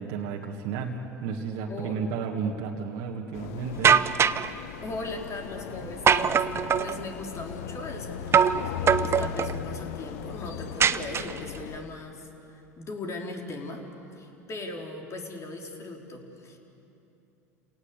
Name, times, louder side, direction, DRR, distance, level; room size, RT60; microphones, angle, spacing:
voice 1, 0.0-3.9, right 5 dB, 60° right, 0 dB, 1.9 m, -32 dB
voice 2, 1.7-2.0 4.8-13.9 14.2-16.6, left 2 dB, 35° left, 2 dB, 3.9 m, -39 dB
sound 1, 3.3-11.8, left 9 dB, 70° left, 1.0 m, -37 dB
sound 2, 3.8-4.5 6.1-7.0 8.3-8.6 8.9-9.6 10.8-11.6, right 7 dB, 30° right, 0.8 m, -21 dB
29.5 x 18.5 x 8.2 m, 2.9 s
hypercardioid pair, 80°, 9 cm